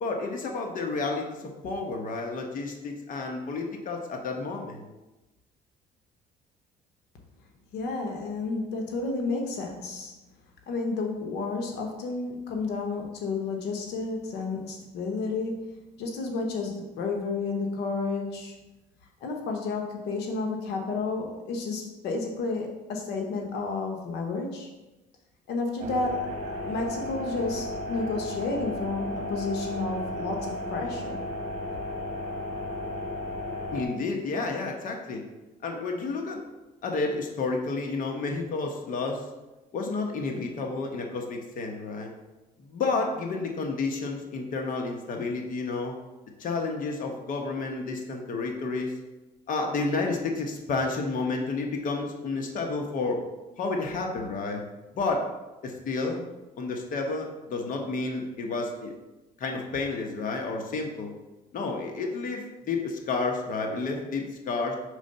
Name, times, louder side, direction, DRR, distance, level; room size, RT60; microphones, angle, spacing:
voice 1, 0.0-4.8 33.7-35.2 35.6-36.4 36.8-39.3 39.7-42.1 42.6-45.9 46.4-48.9 49.5-53.2 53.6-54.6 54.9-55.3 55.6-56.2 56.6-58.9 59.4-61.1 61.5-64.8, left 3 dB, 55° left, 2 dB, 0.9 m, -30 dB
voice 2, 7.7-10.1 10.7-15.7 16.0-18.6 19.2-24.7 25.5-31.2, left 3 dB, 80° left, 2 dB, 0.9 m, -31 dB
sound 1, 25.8-33.8, left 1 dB, 40° right, 1.2 m, -34 dB
5.0 x 3.8 x 5.4 m, 1.1 s
cardioid pair, 110°, 17 cm